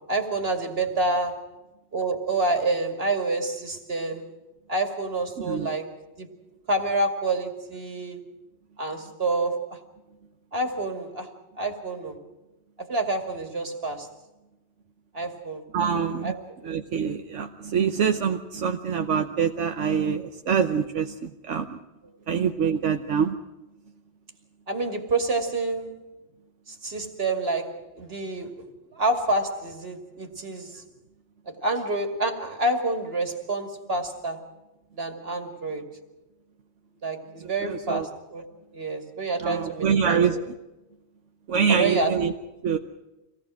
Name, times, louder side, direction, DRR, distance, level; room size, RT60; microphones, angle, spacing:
voice 1, 0.0-1.4 1.9-4.2 4.7-6.3 6.7-8.2 8.8-9.8 10.5-11.3 11.6-12.2 12.8-14.1 15.1-15.6 16.2-16.4 24.7-25.9 26.7-28.5 28.9-30.8 31.5-34.4 34.9-35.9 37.0-38.5 38.7-40.4 41.7-42.2, right 2 dB, 55° right, 4 dB, 2.6 m, -28 dB
voice 2, 5.4-5.7 15.7-16.3 16.6-21.8 22.3-23.3 37.4-38.1 39.4-40.4 41.5-42.3 42.6-42.8, right 7 dB, 80° right, 4 dB, 1.3 m, -25 dB
26.0 x 18.5 x 6.2 m, 1.0 s
omnidirectional pair, 1.2 m